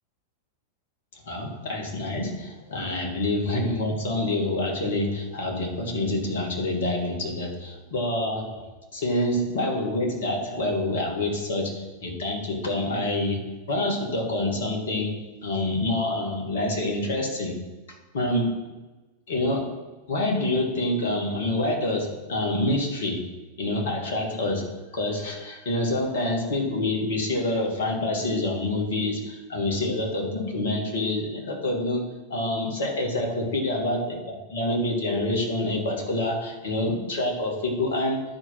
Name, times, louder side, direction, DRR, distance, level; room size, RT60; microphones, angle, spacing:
voice 1, 1.3-17.6 18.1-18.6 19.3-19.8 20.1-23.3 23.6-34.2 34.5-38.2, left 1 dB, 60° left, 0 dB, 2.4 m, -27 dB
11.5 x 4.8 x 6.1 m, 1.1 s
figure-of-eight pair, 90°, 0 cm